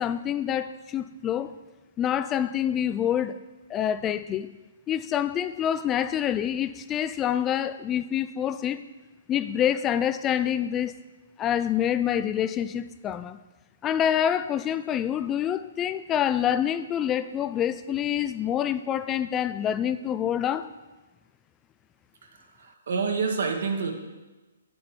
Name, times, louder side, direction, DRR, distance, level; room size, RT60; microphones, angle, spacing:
voice 1, 0.0-1.6 2.0-3.4 3.7-4.5 4.9-8.8 9.3-10.9 11.4-13.4 13.8-20.7, left 10 dB, 15° left, 13 dB, 0.3 m, -26 dB
voice 2, 22.2-23.9, right 5 dB, 70° right, 3 dB, 1.6 m, -28 dB
8.7 x 7.6 x 4.4 m, 1.2 s
hypercardioid pair, 155°, 0 cm